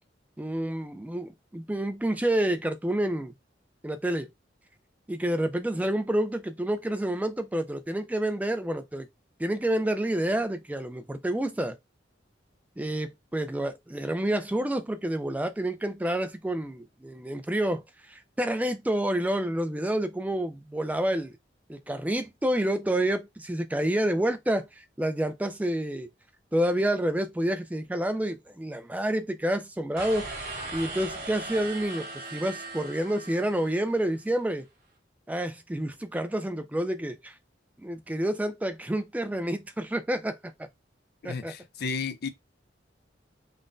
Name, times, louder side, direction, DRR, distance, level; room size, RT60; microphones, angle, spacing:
voice 1, 0.4-3.3 3.8-4.3 5.1-9.1 9.4-11.8 12.8-17.8 18.1-21.4 21.7-26.1 26.5-30.3 30.7-32.1 32.3-34.7 35.3-37.3 37.8-40.4 41.2-41.5, right 1 dB, 10° right, 0.4 m, -28 dB
sound 1, 30.0-34.2, right 2 dB, 50° right, 1.3 m, -39 dB
voice 2, 41.2-42.3, left 5 dB, 60° left, 0.5 m, -33 dB
5.2 x 2.1 x 2.6 m
head